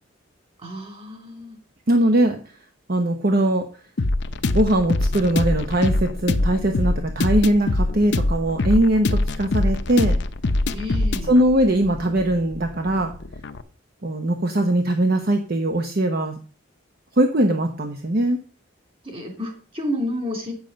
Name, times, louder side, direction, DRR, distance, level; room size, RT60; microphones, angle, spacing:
voice 1, 0.6-1.6 10.7-11.3 19.0-20.5, left 1 dB, 30° right, 3 dB, 2.8 m, -30 dB
voice 2, 1.9-2.4 2.9-3.7 4.5-10.2 11.3-13.1 14.0-16.4 17.2-18.4, right 1 dB, 50° right, 5 dB, 0.9 m, -20 dB
sound 1, 4.0-13.6, left 2 dB, 60° left, 0.7 m, -24 dB
8.8 x 7.4 x 5.2 m, 0.39 s
head